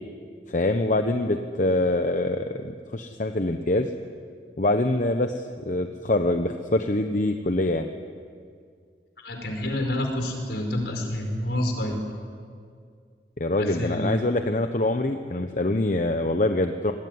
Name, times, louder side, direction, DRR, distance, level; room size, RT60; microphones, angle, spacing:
voice 1, 0.5-3.9 4.6-7.9 13.4-16.9, left 2 dB, 45° left, 6 dB, 1.0 m, -24 dB
voice 2, 9.2-12.0 13.5-14.1, left 1 dB, 65° left, 3 dB, 5.2 m, -28 dB
26.0 x 20.5 x 9.6 m, 2.2 s
head